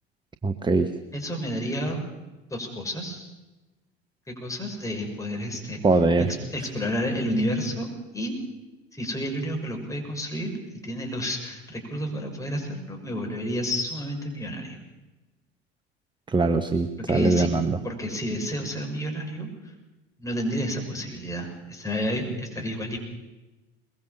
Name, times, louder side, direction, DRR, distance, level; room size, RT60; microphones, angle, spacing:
voice 1, 0.4-0.9 5.8-6.3 16.3-17.8, right 3 dB, 15° right, 10 dB, 1.1 m, -22 dB
voice 2, 1.1-2.0 2.5-3.2 4.4-5.8 6.2-8.3 9.0-10.5 10.8-14.8 17.1-17.5 17.8-19.5 20.2-23.0, equal, 10° left, 1 dB, 6.6 m, -30 dB
22.5 x 21.5 x 7.1 m, 1.1 s
figure-of-eight pair, 65°, 31 cm